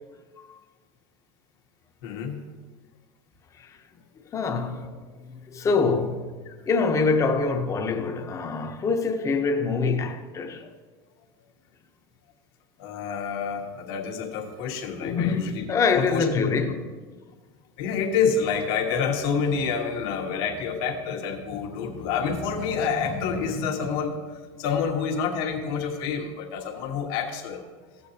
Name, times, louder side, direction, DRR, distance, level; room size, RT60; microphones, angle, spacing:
voice 1, 2.0-2.4 6.5-6.6 12.8-16.5 17.8-27.6, left 6 dB, 70° left, 1.3 m, -28 dB
voice 2, 4.3-6.4 6.7-10.7 15.0-17.0, left 4 dB, 25° left, 0.8 m, -25 dB
14.0 x 8.4 x 2.8 m
supercardioid pair, 140°, 13 cm